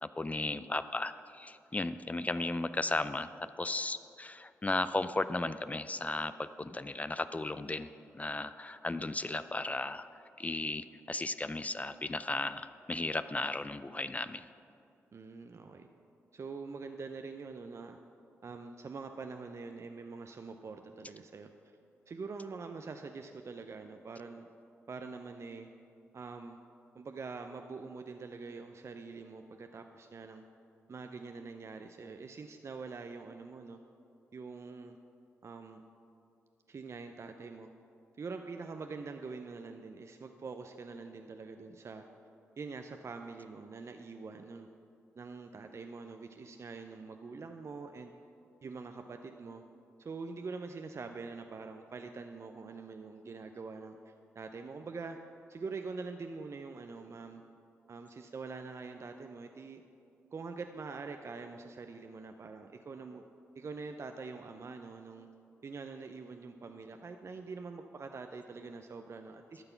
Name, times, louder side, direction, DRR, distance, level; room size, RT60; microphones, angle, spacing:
voice 1, 0.0-3.3 3.6-7.9 8.1-14.5, left 2 dB, 20° left, 12 dB, 0.5 m, -35 dB
voice 2, 15.1-15.9 16.3-18.0 18.4-21.5 22.1-24.5 24.9-25.7 26.1-26.6 26.9-30.4 30.9-33.8 34.3-35.0 35.4-35.8 36.7-37.7 38.2-42.0 42.6-44.7 45.2-48.1 48.6-49.6 50.0-55.2 55.5-57.4 57.9-59.8 60.3-63.2 63.5-65.3 65.6-69.6, right 4 dB, 45° right, 6 dB, 0.6 m, -44 dB
12.0 x 6.8 x 5.7 m, 2.6 s
hypercardioid pair, 40°, 6 cm